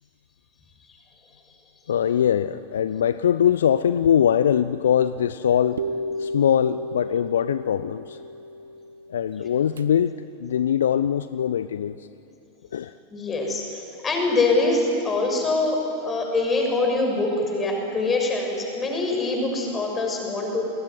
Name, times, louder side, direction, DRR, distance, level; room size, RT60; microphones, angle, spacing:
voice 1, 1.9-5.9 6.2-8.2 9.1-10.1 10.4-12.1 12.7-12.9, left 9 dB, 65° left, 14 dB, 0.6 m, -22 dB
sound 1, 5.8-9.8, equal, 70° right, 1.1 m, -33 dB
voice 2, 13.1-20.7, left 2 dB, 20° left, 2 dB, 6.5 m, -24 dB
28.5 x 20.5 x 9.6 m, 2.9 s
figure-of-eight pair, 90°, 0 cm